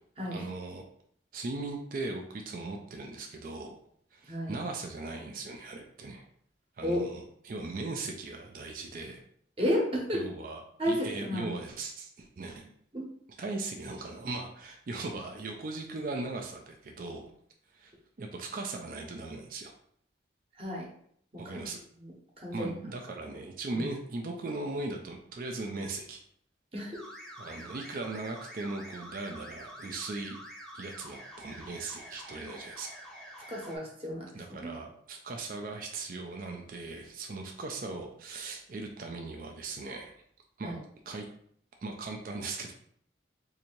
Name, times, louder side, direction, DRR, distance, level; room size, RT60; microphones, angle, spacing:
voice 1, 0.3-0.8 1.3-3.8 4.1-6.3 6.8-9.2 10.1-12.7 13.4-17.3 17.7-19.7 21.4-21.8 22.5-26.2 27.4-30.4 30.7-32.9 34.3-40.1 40.6-40.7 41.1-41.3 41.8-42.7, right 3 dB, 45° right, 2 dB, 0.4 m, -38 dB
voice 2, 4.3-4.6 6.8-7.1 9.6-10.3 10.8-11.5 12.9-13.0 20.6-20.9 21.4-21.6 22.4-22.8 23.7-23.8 26.7-27.0 33.5-34.3 34.6-34.7 40.6-40.8, equal, 30° right, -2 dB, 0.9 m, -32 dB
sound 1, 26.9-33.8, equal, 5° left, 0.5 m, -47 dB
2.8 x 2.6 x 4.3 m, 0.66 s
head